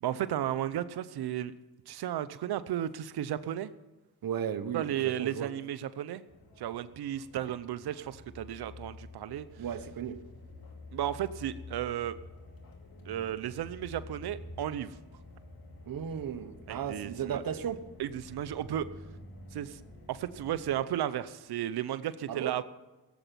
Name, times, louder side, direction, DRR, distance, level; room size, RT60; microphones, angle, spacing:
voice 1, 0.0-1.5 1.9-3.7 4.7-6.2 6.6-9.5 10.9-12.2 13.1-15.0 16.7-17.4 18.0-18.9 19.5-19.8 20.1-22.6, right 11 dB, 80° right, 0.8 m, -34 dB
voice 2, 4.2-5.5 9.6-10.2 15.9-17.8 22.3-22.6, right 8 dB, 65° right, 1.2 m, -35 dB
sound 1, 6.3-20.8, left 2 dB, 65° left, 2.8 m, -49 dB
16.5 x 8.2 x 9.2 m
cardioid pair, 55°, 38 cm